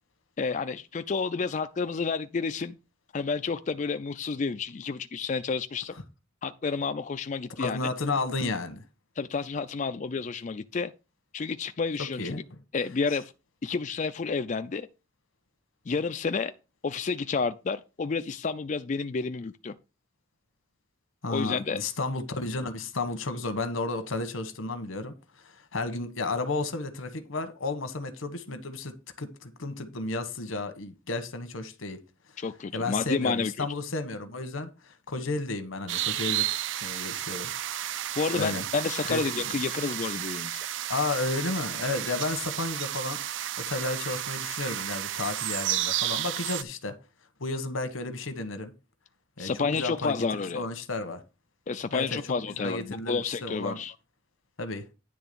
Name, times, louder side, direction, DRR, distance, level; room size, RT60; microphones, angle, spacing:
voice 1, 0.4-2.8 3.1-5.9 6.4-7.8 9.2-10.9 11.3-12.3 12.7-13.3 13.6-14.9 15.9-16.5 16.8-19.7 21.3-21.8 32.4-33.7 38.2-40.7 49.4-50.6 51.7-53.9, left 4 dB, 40° left, 0.4 m, -30 dB
voice 2, 7.6-8.8 12.0-12.4 21.2-25.1 25.7-32.0 32.7-36.5 36.8-37.5 38.4-38.6 39.1-39.3 40.9-43.2 43.6-46.9 47.4-48.7 49.4-51.2 51.9-53.8 54.6-54.9, left 3 dB, 85° left, 1.2 m, -32 dB
sound 1, 35.9-46.6, right 12 dB, 65° right, 0.4 m, -32 dB
10.0 x 3.4 x 6.8 m
head